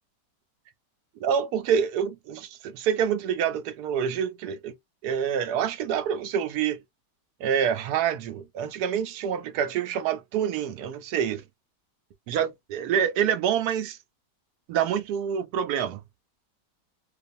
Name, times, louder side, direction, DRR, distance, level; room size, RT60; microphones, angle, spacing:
voice 1, 1.2-4.7 5.0-6.8 7.4-11.4 12.3-14.0 14.7-16.0, right 8 dB, 75° right, 1.0 m, -27 dB
2.6 x 2.4 x 2.5 m
omnidirectional pair, 1.8 m